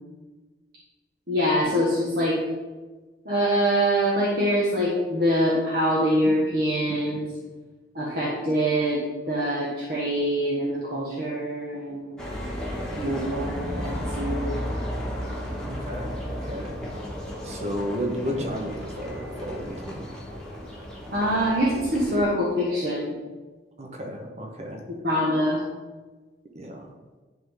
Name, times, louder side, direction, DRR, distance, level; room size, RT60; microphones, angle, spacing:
voice 1, 1.3-2.4 3.2-7.3 7.9-12.3 13.0-14.5 21.1-23.2 25.0-25.6, equal, 60° right, -5 dB, 1.3 m, -24 dB
sound 1, 12.2-22.2, equal, 5° left, 1.3 m, -33 dB
voice 2, 15.6-16.7 17.4-20.1 23.8-24.8 26.5-26.9, equal, 40° right, 1 dB, 0.9 m, -33 dB
10.5 x 3.6 x 3.8 m, 1.3 s
head